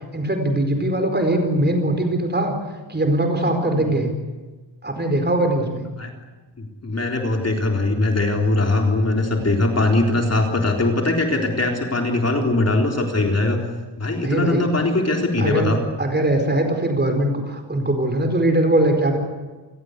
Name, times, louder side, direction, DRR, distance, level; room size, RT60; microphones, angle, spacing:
voice 1, 0.1-2.5 2.9-4.1 4.8-5.9 14.2-14.7 15.4-15.7 16.0-19.2, right 1 dB, 20° right, 5 dB, 4.6 m, -21 dB
voice 2, 6.6-13.6 14.0-15.8, left 2 dB, 35° left, 2 dB, 3.8 m, -21 dB
29.0 x 21.0 x 8.2 m, 1.3 s
wide cardioid pair, 165°, 45 cm